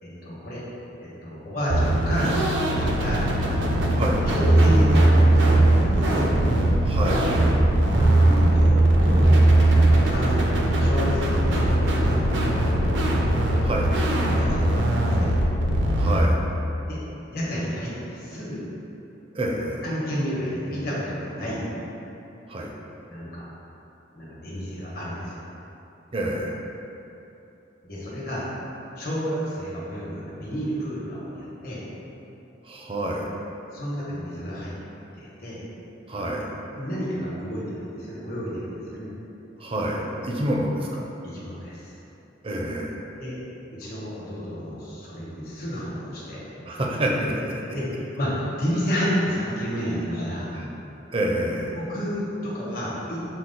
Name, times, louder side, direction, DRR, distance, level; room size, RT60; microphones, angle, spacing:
voice 1, 0.0-0.6 1.0-2.5 2.9-3.2 4.3-6.2 7.9-13.0 14.3-15.3 16.9-17.0 17.3-18.6 19.8-21.6 23.1-23.4 24.1-25.4 27.8-28.5 29.0-31.8 33.7-34.7 35.2-35.6 36.7-39.1 41.2-41.8 43.2-43.4 43.7-46.4 47.7-50.5 51.7-53.2, equal, 55° left, -7 dB, 1.2 m, -31 dB
sound 1, 1.7-16.2, right 1 dB, 80° right, 0.6 m, -20 dB
voice 2, 3.9-4.2 6.8-7.3 13.6-13.9 16.0-16.4 19.3-19.9 22.5-22.7 26.1-26.6 32.6-33.3 36.1-36.5 39.6-41.0 42.4-43.0 46.7-47.6 50.5-50.7 51.1-51.8, right 1 dB, 30° right, -1 dB, 0.5 m, -27 dB
6.1 x 2.1 x 3.8 m, 2.9 s
head